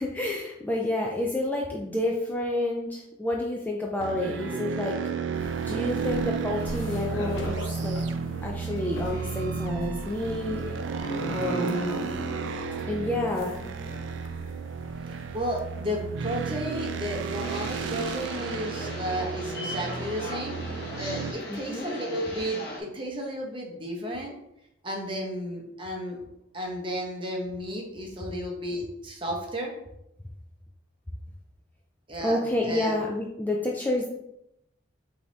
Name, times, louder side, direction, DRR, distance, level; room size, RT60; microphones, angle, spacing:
voice 1, 0.0-5.0 5.6-8.0 8.4-10.6 11.3-12.1 12.9-13.6 21.5-21.9 32.2-34.1, left 1 dB, 10° left, -1 dB, 0.4 m, -29 dB
sound 1, 4.0-21.3, right 5 dB, 70° right, 0.3 m, -33 dB
sound 2, 5.3-18.3, left 1 dB, 85° left, 0.6 m, -42 dB
voice 2, 15.3-20.6 21.0-24.3 24.8-26.2 26.5-29.7 32.1-32.4 32.6-32.9, equal, 25° right, 0 dB, 0.8 m, -33 dB
sound 3, 17.4-22.8, left 1 dB, 55° left, 0.9 m, -38 dB
5.5 x 2.8 x 3.2 m, 0.83 s
head